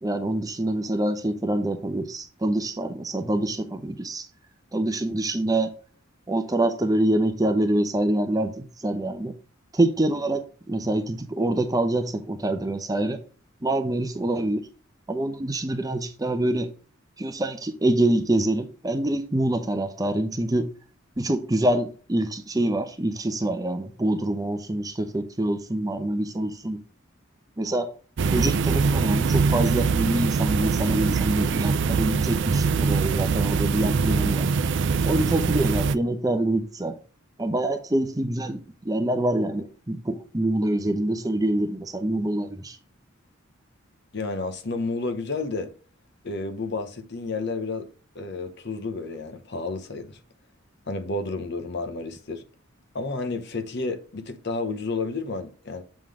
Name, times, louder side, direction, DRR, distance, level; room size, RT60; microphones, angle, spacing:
voice 1, 0.0-4.3 4.7-5.7 6.3-9.3 9.7-10.4 10.7-13.2 13.6-14.6 15.1-16.7 17.2-20.6 21.2-26.8 27.6-27.9 28.2-34.5 35.0-36.9 37.4-42.8, right 1 dB, 15° right, 0.7 m, -25 dB
sound 1, 28.2-36.0, right 5 dB, 60° right, 0.4 m, -23 dB
voice 2, 44.1-45.7 46.2-50.2 50.9-52.4 52.9-55.8, left 3 dB, 55° left, 0.9 m, -31 dB
7.4 x 3.8 x 4.8 m
head